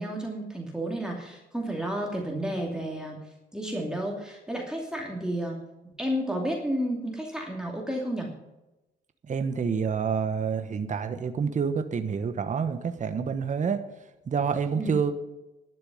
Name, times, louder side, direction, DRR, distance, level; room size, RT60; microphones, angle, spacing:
voice 1, 0.0-3.2 3.5-5.6 6.0-8.3 14.8-15.0, right 1 dB, 5° right, -1 dB, 2.6 m, -31 dB
voice 2, 9.3-13.8 14.3-15.1, right 6 dB, 40° right, 9 dB, 1.1 m, -28 dB
12.0 x 6.9 x 9.3 m, 0.97 s
cardioid pair, 90°, 20 cm